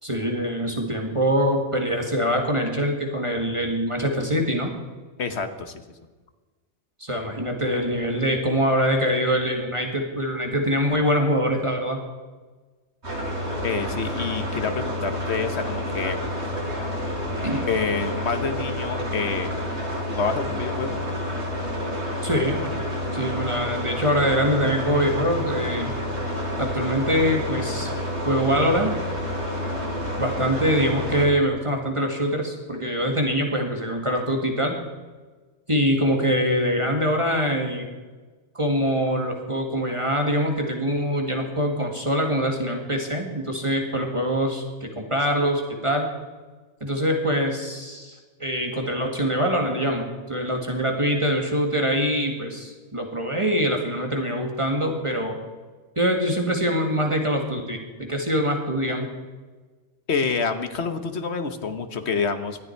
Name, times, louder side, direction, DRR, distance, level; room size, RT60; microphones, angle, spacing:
voice 1, 0.0-4.7 7.0-12.0 17.4-17.7 22.2-22.7 23.1-26.0 26.6-27.9 28.3-28.9 30.2-34.8 35.7-37.9 38.5-46.1 46.8-55.4 56.0-59.1, equal, 25° right, 2 dB, 2.0 m, -24 dB
voice 2, 5.2-5.7 13.6-16.2 17.7-19.5 20.1-21.0 60.1-62.6, left 5 dB, 70° left, 8 dB, 1.5 m, -27 dB
sound 1, 13.0-31.3, left 1 dB, 70° right, 5.2 m, -29 dB
19.0 x 13.0 x 4.6 m, 1.3 s
omnidirectional pair, 1.2 m